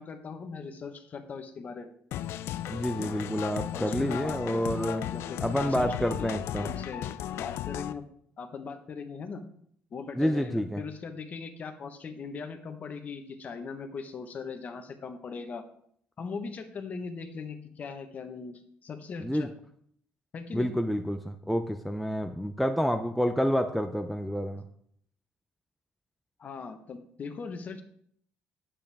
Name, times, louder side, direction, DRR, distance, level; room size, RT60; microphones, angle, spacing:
voice 1, 0.0-1.9 2.9-3.1 3.7-6.3 6.6-8.0 8.4-9.4 9.9-15.6 16.2-19.5 20.3-20.7 26.4-27.8, left 5 dB, 40° left, 6 dB, 1.1 m, -40 dB
sound 1, 2.1-7.9, left 12 dB, 75° left, 0.4 m, -35 dB
voice 2, 2.7-5.0 5.4-6.7 10.2-10.8 19.2-19.5 20.5-24.6, equal, ahead, 6 dB, 0.5 m, -28 dB
10.0 x 8.6 x 3.5 m, 0.65 s
cardioid pair, 145°, 4 cm